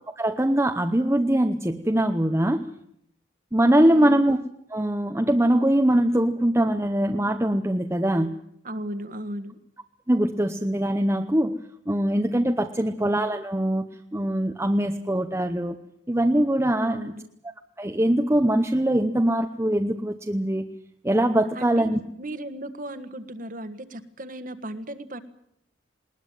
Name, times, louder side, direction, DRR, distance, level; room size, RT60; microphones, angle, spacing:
voice 1, 0.2-2.7 3.5-4.4 4.7-8.4 10.1-11.6 11.9-15.8 16.1-17.1 17.8-20.7 21.0-22.0, right 1 dB, 15° right, 4 dB, 0.9 m, -22 dB
voice 2, 3.9-4.2 8.6-9.6 16.8-17.3 21.5-25.2, right 1 dB, 45° right, 10 dB, 1.6 m, -36 dB
20.0 x 20.0 x 9.2 m, 0.73 s
head